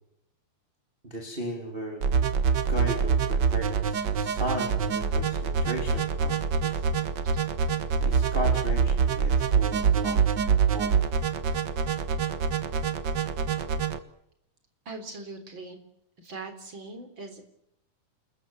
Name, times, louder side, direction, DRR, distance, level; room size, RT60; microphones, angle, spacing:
voice 1, 1.0-2.1 2.7-6.8 8.0-10.9, equal, 15° right, 1 dB, 3.5 m, -36 dB
sound 1, 2.0-14.0, right 6 dB, 60° right, 1.2 m, -25 dB
voice 2, 14.9-15.8 16.2-17.4, right 3 dB, 35° right, 7 dB, 4.2 m, -41 dB
28.5 x 14.0 x 9.6 m, 0.77 s
omnidirectional pair, 3.6 m